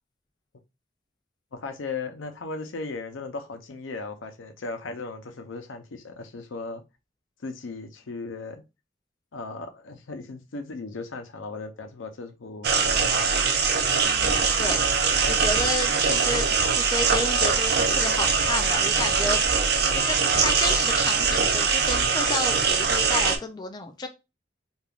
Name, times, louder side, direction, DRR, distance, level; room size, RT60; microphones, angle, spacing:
voice 1, 1.5-6.8 7.4-8.6 9.3-13.5 19.1-19.6, left 3 dB, 90° left, 0.6 m, -37 dB
sound 1, 12.6-23.4, right 5 dB, 55° right, 0.5 m, -22 dB
voice 2, 14.0-14.8 15.3-19.4 19.9-24.1, left 2 dB, 20° left, 0.3 m, -31 dB
3.3 x 2.4 x 2.4 m
head